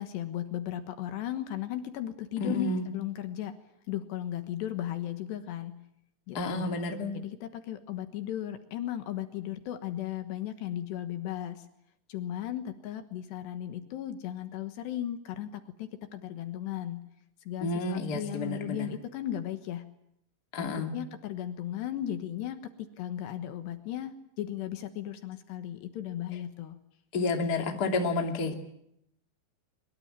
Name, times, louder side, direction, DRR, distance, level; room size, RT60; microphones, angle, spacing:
voice 1, 0.0-3.6 3.9-5.8 6.3-6.7 7.1-11.7 12.1-17.0 17.5-19.8 20.6-26.8 27.4-27.9, left 11 dB, 70° left, 9 dB, 3.3 m, -36 dB
voice 2, 2.4-2.8 6.3-7.2 17.6-18.9 20.5-20.9 27.1-28.5, left 2 dB, 30° left, 4 dB, 2.2 m, -30 dB
23.5 x 22.0 x 8.9 m, 0.75 s
omnidirectional pair, 5.4 m